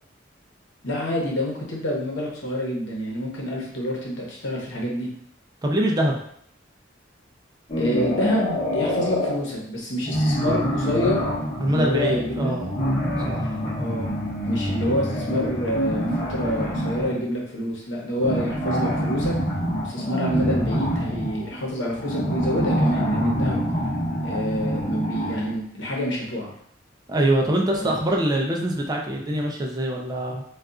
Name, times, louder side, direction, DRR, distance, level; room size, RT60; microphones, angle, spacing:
voice 1, 0.8-5.1 7.8-11.2 11.7-12.5 13.7-14.1 14.4-19.4 19.8-23.6 24.2-26.5 27.8-28.0, equal, 75° left, -3 dB, 0.9 m, -27 dB
voice 2, 5.6-6.2 11.6-12.7 13.3-13.5 27.1-30.4, right 1 dB, 20° right, 0 dB, 0.4 m, -23 dB
sound 1, 7.7-9.4 10.0-17.2 18.2-25.6, equal, 40° left, 0.8 m, -26 dB
3.9 x 2.4 x 2.3 m, 0.67 s
head